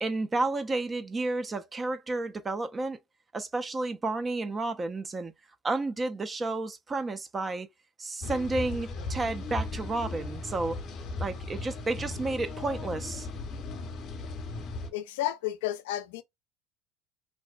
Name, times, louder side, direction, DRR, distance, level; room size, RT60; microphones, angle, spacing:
voice 1, 0.0-3.0 3.3-5.3 5.6-7.7 8.0-10.8 11.2-13.3, right 2 dB, 25° right, 0.3 m, -31 dB
sound 1, 8.2-14.9, left 2 dB, 50° left, 0.7 m, -37 dB
voice 2, 14.9-16.2, left 13 dB, 85° left, 0.3 m, -32 dB
2.5 x 2.1 x 2.3 m
supercardioid pair, 85°, 0 cm